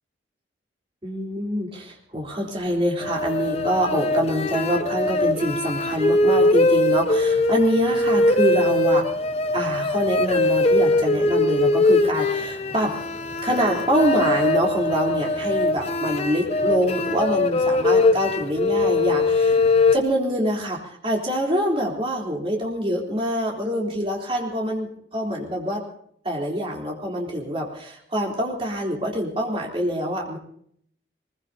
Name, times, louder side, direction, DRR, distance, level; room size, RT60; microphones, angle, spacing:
voice 1, 1.0-9.1 9.5-13.0 13.4-19.6 19.9-25.8 26.2-30.4, equal, 30° right, -1 dB, 3.7 m, -25 dB
sound 1, 3.0-20.0, left 2 dB, 35° left, 0.7 m, -21 dB
23.0 x 21.5 x 2.9 m, 0.65 s
head